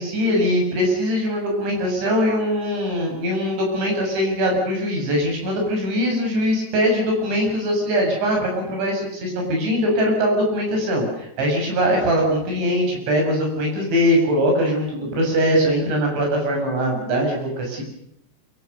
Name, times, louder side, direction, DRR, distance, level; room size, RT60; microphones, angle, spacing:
voice 1, 0.0-17.8, equal, 90° right, 1 dB, 9.4 m, -21 dB
27.0 x 24.5 x 6.8 m, 0.76 s
omnidirectional pair, 5.1 m